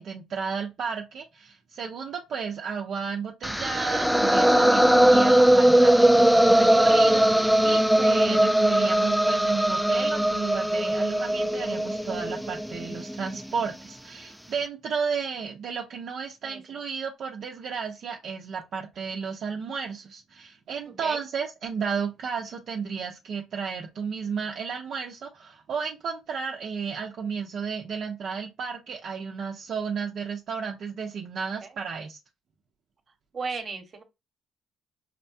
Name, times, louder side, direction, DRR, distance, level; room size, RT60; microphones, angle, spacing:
voice 1, 0.0-32.2, right 6 dB, 60° right, 0.7 m, -33 dB
sound 1, 3.4-13.5, right 1 dB, ahead, 0.3 m, -20 dB
voice 2, 20.9-21.2 31.6-31.7 33.3-34.0, right 4 dB, 40° right, 1.2 m, -35 dB
5.8 x 2.2 x 2.7 m
cardioid pair, 80°, 0 cm